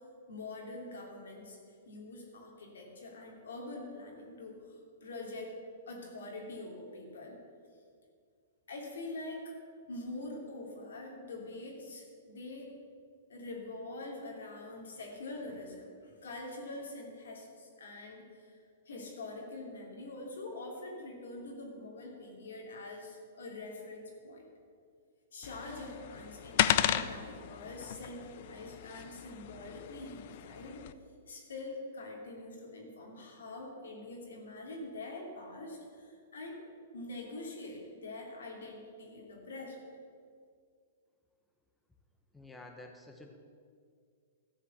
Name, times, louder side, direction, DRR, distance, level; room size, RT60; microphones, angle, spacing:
voice 1, 0.3-1.6 1.9-5.5 5.9-7.4 8.7-9.5 9.9-12.7 13.3-24.4 25.3-30.9 31.3-36.7 36.9-39.8, left 2 dB, 85° left, 0 dB, 3.0 m, -44 dB
sound 1, 25.4-30.9, left 11 dB, 55° left, 0.5 m, -34 dB
voice 2, 42.3-43.4, left 2 dB, 5° left, 3 dB, 1.0 m, -50 dB
13.5 x 5.0 x 8.2 m, 2.2 s
hypercardioid pair, 140°, 0 cm